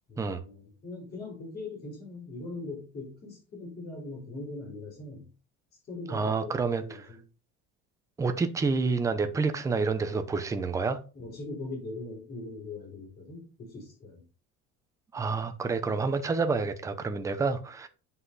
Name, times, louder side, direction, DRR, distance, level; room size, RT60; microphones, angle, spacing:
voice 1, 0.1-5.3 5.9-7.2 11.1-14.2, left 2 dB, 35° left, 4.1 m, -41 dB
voice 2, 6.1-7.1 8.2-11.0 15.1-17.9, right 4 dB, 10° right, 0.6 m, -28 dB
7.8 x 5.7 x 4.0 m
cardioid pair, 180°, 29 cm